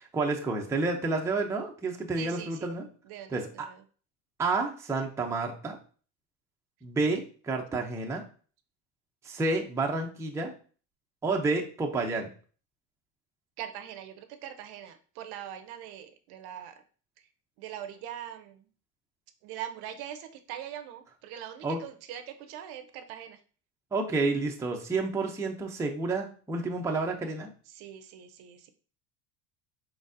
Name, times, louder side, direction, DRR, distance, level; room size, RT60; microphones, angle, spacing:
voice 1, 0.0-2.9 3.3-3.7 4.4-5.8 6.8-8.2 9.2-10.5 11.2-12.3 21.6-21.8 23.9-27.5, right 3 dB, 5° right, 1 dB, 0.5 m, -30 dB
voice 2, 2.2-2.7 3.0-3.8 13.6-16.8 17.6-18.7 19.4-23.4 27.7-28.7, right 10 dB, 50° right, 9 dB, 0.7 m, -42 dB
4.6 x 4.0 x 2.6 m, 0.40 s
supercardioid pair, 110°, 49 cm